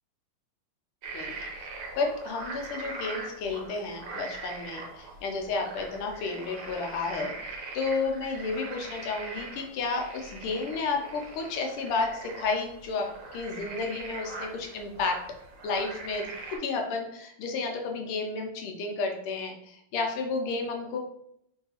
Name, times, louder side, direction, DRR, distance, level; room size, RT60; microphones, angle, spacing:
sound 1, 1.0-16.6, right 3 dB, 80° right, 1.5 m, -41 dB
voice 1, 2.0-13.1 13.3-15.2 15.6-16.3 16.6-21.0, left 4 dB, 80° left, 2 dB, 1.5 m, -32 dB
3.8 x 2.7 x 2.8 m, 0.75 s
omnidirectional pair, 2.4 m